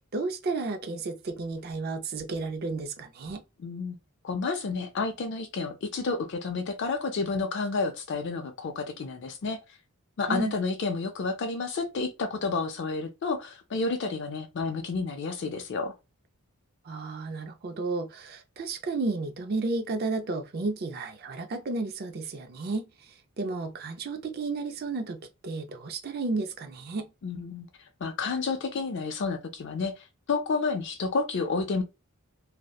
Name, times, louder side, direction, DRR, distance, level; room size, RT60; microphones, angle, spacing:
voice 1, 0.1-3.4 10.3-10.5 16.9-22.8 23.4-27.1, right 3 dB, 45° right, 0.4 m, -32 dB
voice 2, 3.6-4.0 4.2-9.6 10.2-15.9 27.2-27.7 28.0-31.8, left 4 dB, 50° left, 0.4 m, -30 dB
2.7 x 2.1 x 2.3 m
head